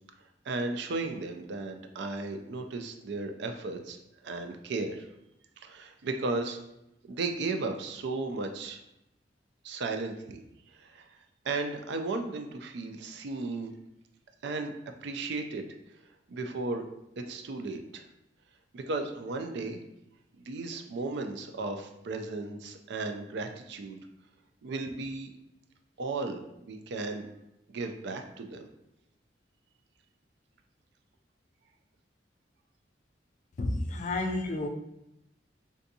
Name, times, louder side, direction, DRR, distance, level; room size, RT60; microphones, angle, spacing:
voice 1, 0.5-4.0 4.2-5.0 5.6-6.6 7.0-8.8 9.6-10.4 10.8-11.1 11.4-13.7 14.4-14.7 15.0-15.7 16.3-16.8 17.2-18.0 18.7-19.8 20.5-24.0 24.6-25.3 26.0-27.3 27.7-28.7, right 3 dB, 70° right, 6 dB, 0.4 m, -35 dB
voice 2, 33.6-34.7, left 2 dB, 40° left, 4 dB, 0.4 m, -30 dB
3.4 x 2.6 x 2.7 m, 0.85 s
head